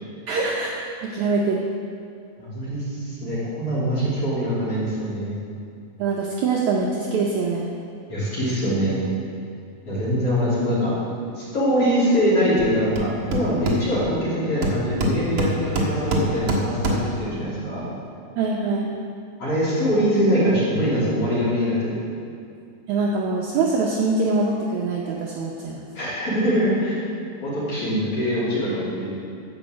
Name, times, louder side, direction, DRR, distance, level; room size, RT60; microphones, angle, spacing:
voice 1, 0.3-0.7 1.0-1.6 6.0-7.7 18.4-18.9 22.9-25.8, right 3 dB, 75° right, -2 dB, 1.7 m, -23 dB
voice 2, 2.4-5.4 8.1-9.1 9.8-10.9 11.4-17.9 19.4-22.0 25.9-27.1 27.4-29.2, equal, 40° left, -10 dB, 3.8 m, -23 dB
Hammer, 12.6-12.7 13.0-14.2 14.6-17.2, right 1 dB, 55° right, 1.4 m, -25 dB
13.5 x 5.5 x 7.5 m, 2.4 s
omnidirectional pair, 4.5 m